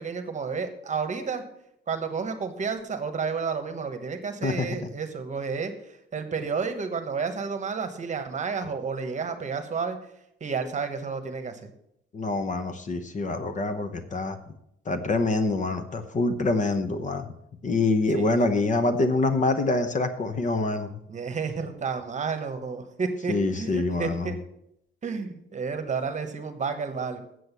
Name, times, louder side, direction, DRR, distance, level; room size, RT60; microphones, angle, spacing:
voice 1, 0.0-1.4 1.9-10.0 10.4-11.7 18.1-18.4 21.1-24.4 25.0-27.2, right 5 dB, 35° right, 8 dB, 1.2 m, -31 dB
voice 2, 12.1-14.4 14.9-17.3 17.6-21.0 23.3-24.3, left 3 dB, 35° left, 9 dB, 0.8 m, -25 dB
7.9 x 7.8 x 6.8 m, 0.78 s
cardioid pair, 150°, 21 cm